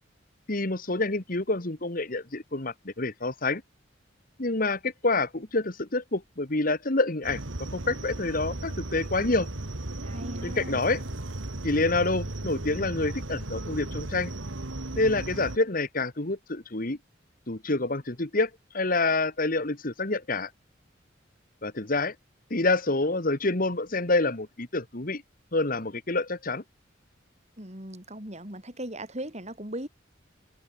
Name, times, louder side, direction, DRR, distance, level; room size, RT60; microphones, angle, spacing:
voice 1, 0.5-3.6 4.4-7.4 7.7-9.5 10.4-11.0 11.6-14.3 14.9-17.0 17.5-20.5 21.6-22.1 22.5-25.2 25.5-26.6, left 2 dB, 45° left, 1.8 m, -27 dB
sound 1, 7.2-15.6, right 1 dB, 85° right, 2.1 m, -36 dB
voice 2, 10.0-10.8 27.6-29.9, right 1 dB, 35° right, 7.7 m, -38 dB
head